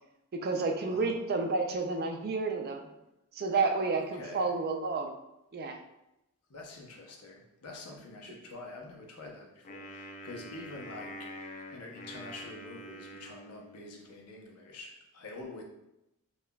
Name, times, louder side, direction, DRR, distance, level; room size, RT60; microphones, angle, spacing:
voice 1, 0.3-2.9 3.3-5.2 5.5-5.8, right 3 dB, 45° right, 4 dB, 0.4 m, -30 dB
voice 2, 0.8-1.2 3.9-4.5 6.5-15.6, left 2 dB, 90° left, 0 dB, 0.7 m, -46 dB
Wind instrument woodwind instrument, 9.6-14.1, equal, 35° left, 0.4 m, -46 dB
5.4 x 2.4 x 2.2 m, 0.89 s
head